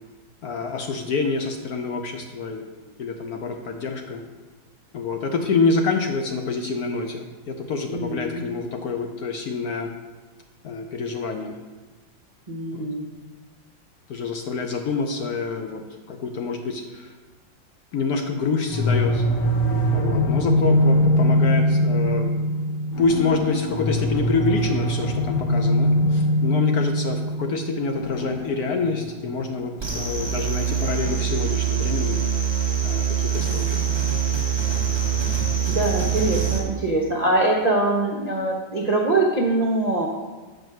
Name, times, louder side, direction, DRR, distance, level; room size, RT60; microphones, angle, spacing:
voice 1, 0.4-2.6 3.0-4.2 4.9-9.9 10.6-11.6 12.7-12.9 14.1-15.8 16.1-17.2 17.9-19.3 19.9-22.3 23.0-32.2 32.8-34.0, left 4 dB, 65° left, 4 dB, 0.9 m, -27 dB
voice 2, 7.9-8.5 12.5-13.0 35.1-35.4 35.7-40.1, right 2 dB, 85° right, -1 dB, 0.3 m, -23 dB
sound 1, 18.7-31.5, equal, 45° left, 1.3 m, -23 dB
sound 2, 29.8-36.6, right 7 dB, 15° right, 1.2 m, -24 dB
7.6 x 5.1 x 6.2 m, 1.3 s
omnidirectional pair, 2.2 m